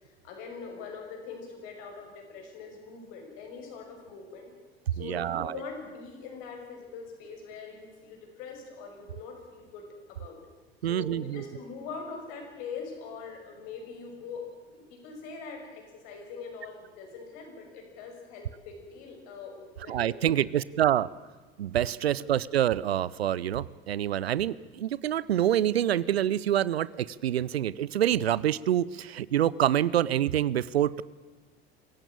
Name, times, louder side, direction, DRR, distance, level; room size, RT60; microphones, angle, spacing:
voice 1, 0.2-4.5 4.9-10.4 10.9-14.5 14.7-20.4 22.0-22.3, left 5 dB, 60° left, 2 dB, 6.1 m, -43 dB
voice 2, 4.9-5.6 10.8-11.4 19.9-21.1 21.6-31.0, right 11 dB, 80° right, 21 dB, 0.7 m, -26 dB
25.0 x 16.0 x 8.7 m, 1.3 s
figure-of-eight pair, 65°, 31 cm